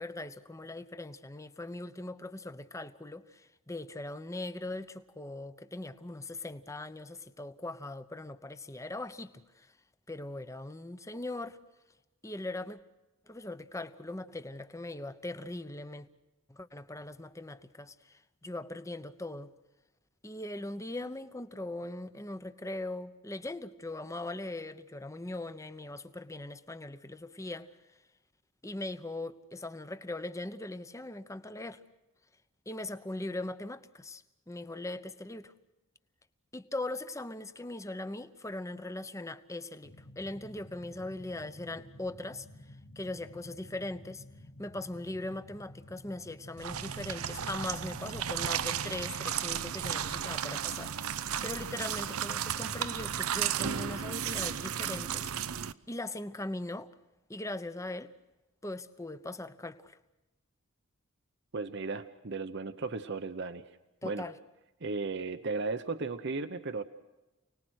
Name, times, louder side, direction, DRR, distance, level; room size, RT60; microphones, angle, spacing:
voice 1, 0.0-9.7 10.1-11.6 12.2-12.8 13.3-16.1 16.5-19.5 20.2-27.7 28.6-31.8 32.7-35.5 36.5-42.5 43.0-44.2 44.6-55.6 55.9-56.9 57.3-58.1 58.6-60.0 64.0-64.4, left 2 dB, 15° left, 0.9 m, -40 dB
sound 1, 39.8-48.3, left 1 dB, 90° left, 2.7 m, -52 dB
sound 2, 46.6-55.7, right 9 dB, 85° right, 0.7 m, -34 dB
voice 2, 61.5-63.6 64.0-64.3 64.8-66.8, right 3 dB, 55° right, 0.8 m, -35 dB
29.0 x 19.5 x 6.3 m
head